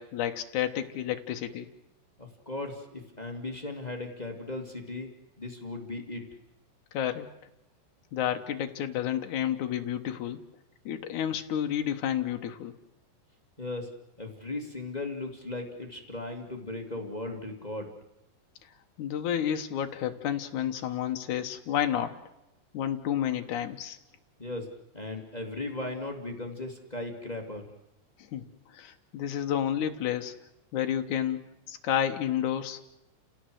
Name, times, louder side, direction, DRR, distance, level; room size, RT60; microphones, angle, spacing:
voice 1, 0.0-1.7 6.9-7.3 8.1-10.4 10.9-12.7 19.0-22.2 22.7-24.0 28.2-28.4 28.7-30.3 30.7-31.4 31.7-33.0, left 10 dB, 75° left, 6 dB, 1.8 m, -30 dB
voice 2, 2.2-5.1 5.4-6.3 13.6-17.9 24.4-27.7, left 2 dB, 20° left, 3 dB, 1.1 m, -37 dB
29.5 x 17.5 x 7.9 m, 0.92 s
omnidirectional pair, 5.2 m